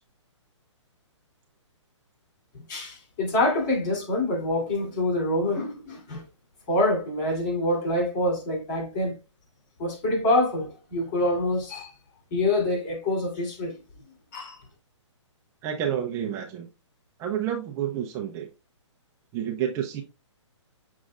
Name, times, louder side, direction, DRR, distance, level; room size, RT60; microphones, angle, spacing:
voice 1, 2.7-6.2 6.7-9.2 9.8-11.9 12.3-13.8 14.3-14.6, left 1 dB, 35° left, 3.1 m, -26 dB
voice 2, 15.6-16.7 17.2-18.5 19.3-20.0, right 9 dB, 20° right, 0.6 m, -29 dB
6.4 x 6.0 x 2.4 m
hypercardioid pair, 150°, 16 cm